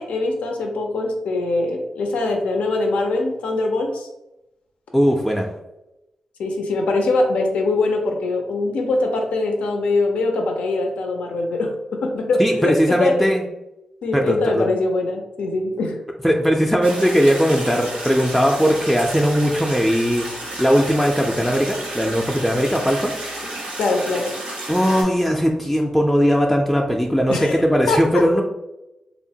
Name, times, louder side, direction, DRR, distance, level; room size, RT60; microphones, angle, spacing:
voice 1, 0.0-4.1 6.4-11.7 12.0-13.3 14.0-16.0 23.8-24.3 27.3-27.6 27.9-28.2, left 2 dB, 85° left, 2 dB, 0.4 m, -22 dB
voice 2, 4.9-5.5 12.4-13.4 14.1-14.7 16.2-20.3 20.6-23.1 24.7-28.4, equal, ahead, 0 dB, 0.4 m, -19 dB
sound 1, 16.8-25.0, right 1 dB, 90° right, 0.7 m, -32 dB
2.8 x 2.1 x 2.7 m, 0.93 s
supercardioid pair, 40°, 2 cm